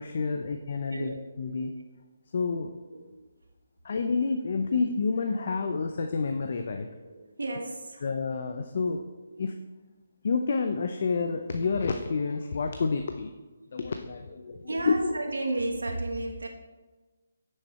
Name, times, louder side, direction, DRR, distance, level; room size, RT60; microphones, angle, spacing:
voice 1, 0.0-1.7 2.3-2.7 3.8-6.9 8.0-9.0 9.4-9.5 10.2-13.3 13.7-14.9, left 4 dB, 55° left, 6 dB, 0.7 m, -29 dB
voice 2, 7.0-8.0 9.3-9.4 13.6-13.7 14.7-16.5, right 2 dB, 85° right, 3 dB, 1.2 m, -33 dB
9.8 x 6.6 x 4.3 m, 1.2 s
figure-of-eight pair, 150°, 0 cm